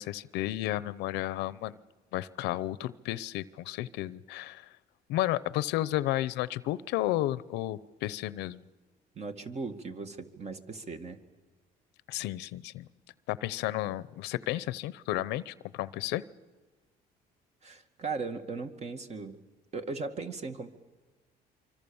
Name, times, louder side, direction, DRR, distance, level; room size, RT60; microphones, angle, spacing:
voice 1, 0.0-1.8 2.1-4.7 5.1-8.6 12.1-12.9 13.3-16.2, left 15 dB, 90° left, 17 dB, 0.8 m, -32 dB
voice 2, 9.2-11.2 17.6-19.4 19.7-20.7, right 4 dB, 40° right, 7 dB, 2.1 m, -38 dB
25.5 x 25.0 x 7.1 m, 1.3 s
cardioid pair, 110°, 17 cm